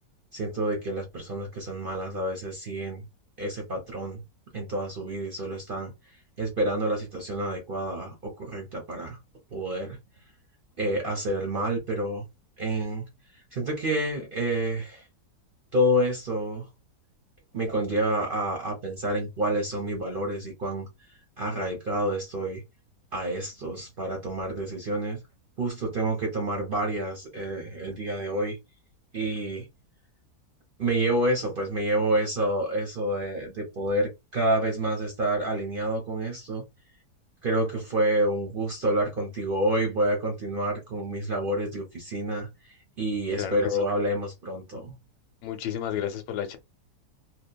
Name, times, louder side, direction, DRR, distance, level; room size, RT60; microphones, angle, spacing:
voice 1, 0.3-3.1 3.4-4.2 4.5-5.9 6.4-9.2 9.5-10.0 10.8-12.3 12.6-13.1 13.3-15.0 15.7-16.7 17.5-20.9 21.4-22.6 23.1-25.2 25.6-28.6 29.1-29.7 30.8-36.6 37.4-42.5 43.0-44.9, right 1 dB, 50° right, 0.7 m, -28 dB
voice 2, 45.4-46.6, left 10 dB, 90° left, 1.2 m, -31 dB
2.8 x 2.2 x 2.2 m
omnidirectional pair, 1.7 m